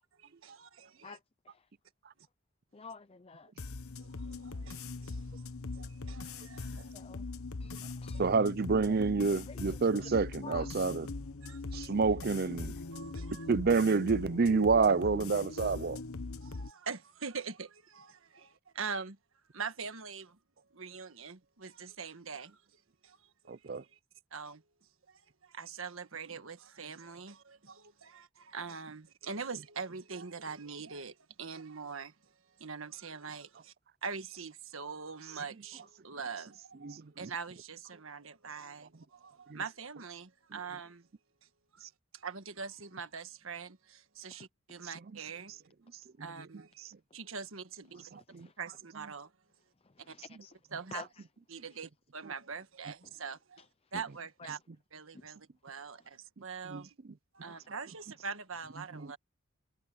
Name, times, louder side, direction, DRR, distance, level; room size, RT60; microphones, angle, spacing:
voice 1, 0.2-1.2 4.0-5.5 5.7-6.9 11.4-11.9 12.9-13.5 16.4-19.2 19.5-20.4 20.7-22.5 23.0-24.0 24.3-24.6 25.1-32.1 32.6-33.7 34.0-41.1 41.7-41.8 42.1-45.6 46.2-46.8 47.1-48.0 48.6-49.3 50.1-50.2 50.7-51.0 51.5-53.6 53.9-54.6 54.9-55.4 55.6-57.0 57.3-59.2, right 5 dB, 70° right, 1.5 m, -43 dB
voice 2, 2.7-3.5 6.9-7.3 7.6-8.2 8.8-9.0 9.3-10.1 10.4-10.7 48.1-48.5 49.8-50.6 50.9-51.2 54.4-54.5 55.1-55.3 57.4-57.7, left 4 dB, 25° left, 0.6 m, -50 dB
sound 1, 3.6-16.7, left 3 dB, 85° left, 1.1 m, -41 dB
voice 3, 8.2-11.1 11.7-12.7 13.5-16.0 23.5-23.8 36.8-37.3 39.5-39.6 48.1-48.5 56.7-56.8 58.9-59.1, right 4 dB, 45° right, 0.5 m, -28 dB
head